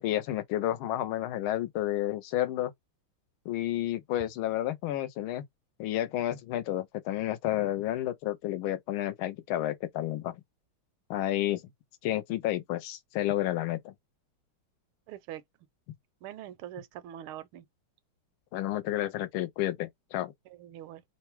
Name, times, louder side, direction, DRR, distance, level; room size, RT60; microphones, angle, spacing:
voice 1, 0.0-2.7 3.5-5.4 5.8-10.4 11.1-11.6 12.0-13.9 18.5-20.3, left 13 dB, 80° left, 1.5 m, -31 dB
voice 2, 15.1-15.4 16.2-17.7 20.4-21.0, right 12 dB, 85° right, 1.5 m, -43 dB
3.6 x 2.1 x 4.4 m
omnidirectional pair, 2.3 m